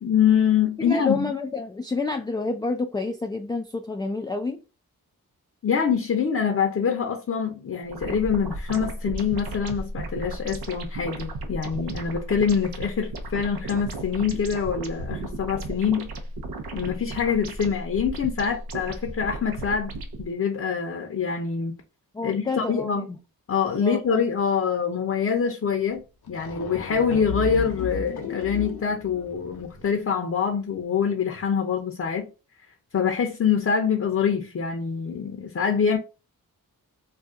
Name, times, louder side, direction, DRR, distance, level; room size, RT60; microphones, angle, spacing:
voice 1, 0.0-1.3 5.6-16.1 16.7-19.9 20.2-21.7 22.2-23.1 23.5-26.0 26.3-32.3 32.9-36.0, left 7 dB, 40° left, 0.7 m, -25 dB
voice 2, 0.9-4.6 22.1-23.2 23.8-24.0, left 3 dB, 10° left, 0.3 m, -28 dB
sound 1, 7.9-20.2, right 2 dB, 75° right, 0.7 m, -35 dB
sound 2, 25.9-26.0 26.2-30.0, left 4 dB, 90° left, 0.7 m, -34 dB
2.5 x 2.3 x 3.6 m
cardioid pair, 50°, 37 cm